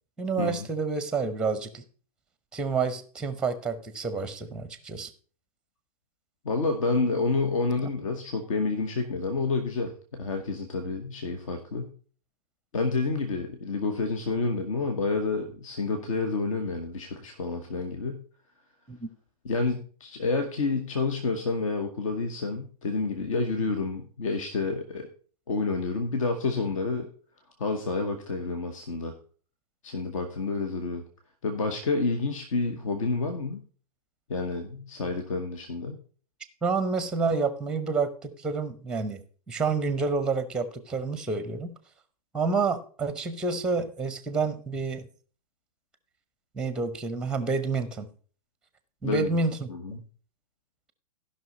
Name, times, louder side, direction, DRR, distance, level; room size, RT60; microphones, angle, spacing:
voice 1, 0.2-1.8 2.5-5.1 18.9-19.1 36.6-39.2 39.5-41.7 42.3-45.1 46.6-48.1 49.0-50.0, right 4 dB, 5° right, 13 dB, 0.7 m, -29 dB
voice 2, 6.4-11.9 12.7-18.2 19.4-25.1 25.5-27.1 27.6-29.1 29.8-31.0 31.4-33.6 34.3-36.0 49.0-49.3 49.7-50.0, left 3 dB, 55° left, 6 dB, 1.3 m, -29 dB
15.0 x 5.7 x 3.9 m, 0.41 s
figure-of-eight pair, 110°, 20 cm